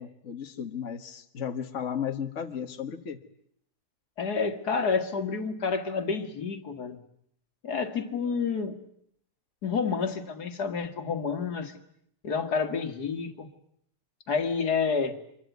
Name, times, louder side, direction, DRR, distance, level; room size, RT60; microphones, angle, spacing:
voice 1, 0.0-3.2, left 8 dB, 50° left, 5 dB, 1.7 m, -34 dB
voice 2, 4.2-7.0 7.6-8.8 9.6-11.8 12.2-13.5 14.3-15.2, left 5 dB, 75° left, 8 dB, 2.4 m, -29 dB
25.5 x 22.5 x 9.3 m, 0.69 s
omnidirectional pair, 1.7 m